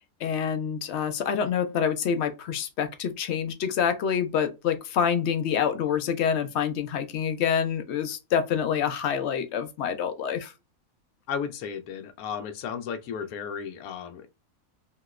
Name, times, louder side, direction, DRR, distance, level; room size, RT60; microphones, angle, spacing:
voice 1, 0.2-10.5, left 7 dB, 65° left, 0.7 m, -27 dB
voice 2, 11.3-14.3, left 7 dB, 85° left, 1.0 m, -34 dB
2.9 x 2.8 x 2.3 m
omnidirectional pair, 1.5 m